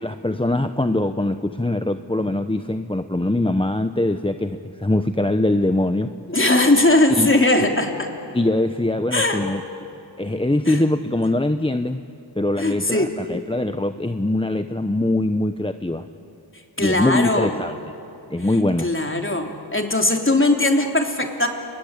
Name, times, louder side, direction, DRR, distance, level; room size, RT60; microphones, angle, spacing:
voice 1, 0.0-6.1 7.2-7.3 8.3-9.6 10.2-12.0 12.4-16.1 16.8-17.8 18.3-18.9, left 1 dB, 10° left, 9 dB, 0.9 m, -22 dB
voice 2, 6.3-8.1 9.1-9.4 10.7-10.8 12.6-13.1 16.8-17.6 18.8-21.5, left 2 dB, 30° left, 3 dB, 3.4 m, -19 dB
30.0 x 20.5 x 8.3 m, 2.7 s
cardioid pair, 50°, 43 cm